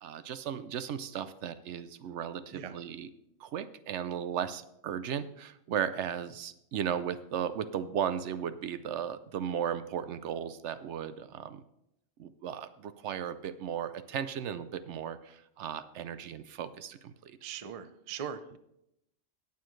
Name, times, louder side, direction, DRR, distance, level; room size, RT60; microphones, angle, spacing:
voice 1, 0.0-3.1 3.4-11.6 12.2-17.4, right 8 dB, 70° right, 13 dB, 0.8 m, -36 dB
voice 2, 17.4-18.6, right 8 dB, 40° right, 11 dB, 0.5 m, -40 dB
18.0 x 7.0 x 3.1 m, 0.80 s
omnidirectional pair, 1.3 m